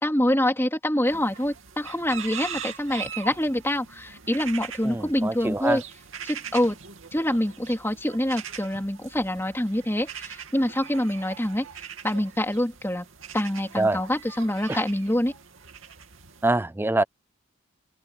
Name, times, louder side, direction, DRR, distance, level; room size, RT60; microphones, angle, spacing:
voice 1, 0.0-5.8 6.2-6.7 7.1-11.6 12.0-13.0 13.3-15.3, left 1 dB, 10° left, 3.2 m, -25 dB
sound 1, 1.1-16.5, right 8 dB, 70° right, 2.6 m, -41 dB
voice 2, 4.8-5.8 13.8-14.0 14.7-14.8 16.4-17.0, right 2 dB, 10° right, 0.4 m, -24 dB
open air
head